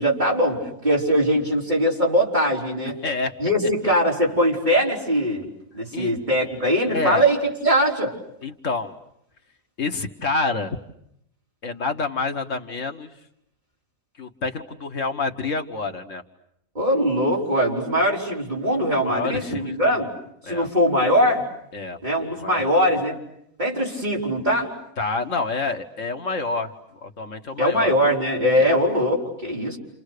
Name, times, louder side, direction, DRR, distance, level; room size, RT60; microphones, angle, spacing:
voice 1, 0.0-3.0 3.4-5.5 5.7-8.1 16.8-20.1 20.5-21.5 22.0-23.2 23.6-24.7 27.6-29.8, equal, 35° right, -3 dB, 5.2 m, -21 dB
voice 2, 3.0-3.3 5.9-6.1 6.9-7.2 8.4-9.0 9.8-10.8 11.6-13.1 14.2-16.2 19.0-20.0 20.4-20.7 21.7-22.0 22.4-22.7 25.0-26.7 27.0-27.9 28.5-28.8, left 3 dB, 70° left, 5 dB, 1.8 m, -28 dB
30.0 x 29.0 x 6.7 m, 0.76 s
omnidirectional pair, 1.4 m